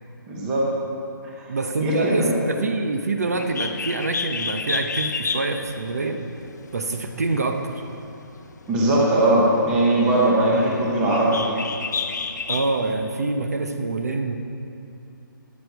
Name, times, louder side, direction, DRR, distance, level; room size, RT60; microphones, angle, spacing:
voice 1, 0.3-0.7 1.2-1.5 1.8-2.4 8.7-11.5, right 1 dB, 5° right, -4 dB, 0.9 m, -20 dB
voice 2, 1.5-6.3 6.7-7.8 12.5-14.3, right 3 dB, 45° right, 6 dB, 0.8 m, -26 dB
Bird, 3.3-12.9, left 5 dB, 55° left, 0.8 m, -32 dB
13.5 x 10.0 x 4.6 m, 2.7 s
hypercardioid pair, 180°, 11 cm